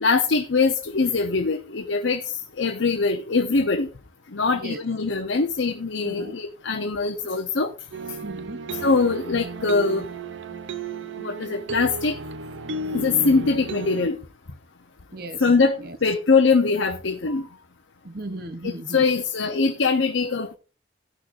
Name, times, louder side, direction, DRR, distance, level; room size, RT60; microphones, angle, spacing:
voice 1, 0.0-3.9 4.3-7.7 8.8-10.1 11.2-12.2 12.9-14.2 15.4-17.5 18.6-20.5, left 4 dB, 90° left, 0.9 m, -22 dB
voice 2, 4.5-4.8 6.0-6.4 8.2-8.6 15.1-15.5 15.8-16.0 18.0-19.0, right 2 dB, 50° right, 1.0 m, -36 dB
sound 1, 7.9-14.1, right 3 dB, 85° right, 0.7 m, -33 dB
17.5 x 6.4 x 2.6 m
head